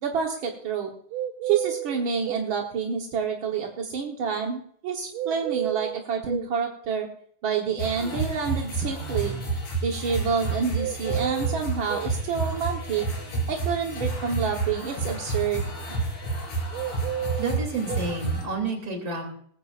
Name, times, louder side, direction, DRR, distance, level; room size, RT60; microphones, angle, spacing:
voice 1, 0.0-0.9 1.4-7.1 7.4-9.4 9.8-13.0 13.5-15.7, right 6 dB, 60° right, 1 dB, 1.4 m, -28 dB
sound 1, 1.1-2.5 5.1-6.5 10.7-12.1 16.7-18.1, right 12 dB, 90° right, 1.5 m, -32 dB
sound 2, 7.8-18.4, right 3 dB, 55° left, 5.3 m, -30 dB
voice 2, 17.4-19.2, right 3 dB, 30° right, 3 dB, 3.2 m, -30 dB
19.0 x 14.5 x 2.5 m, 0.62 s
omnidirectional pair, 3.8 m